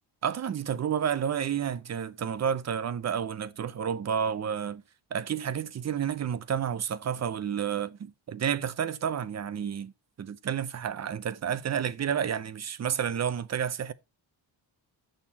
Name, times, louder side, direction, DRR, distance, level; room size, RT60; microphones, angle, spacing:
voice 1, 0.2-4.8 5.1-9.9 10.2-13.9, right 8 dB, 35° right, 0.7 m, -30 dB
8.9 x 6.6 x 4.1 m
cardioid pair, 130°, 45 cm